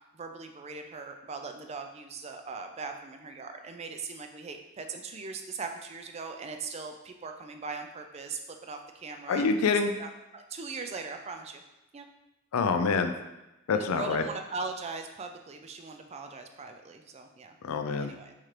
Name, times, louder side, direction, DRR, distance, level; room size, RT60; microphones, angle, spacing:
voice 1, 0.1-9.4 10.0-11.6 11.9-12.1 13.7-17.5 18.0-18.3, right 4 dB, 30° right, 5 dB, 0.3 m, -40 dB
voice 2, 9.3-9.9 12.5-13.1 13.7-14.2 17.6-18.1, left 4 dB, 80° left, 7 dB, 0.4 m, -26 dB
4.3 x 3.7 x 3.2 m, 0.95 s
head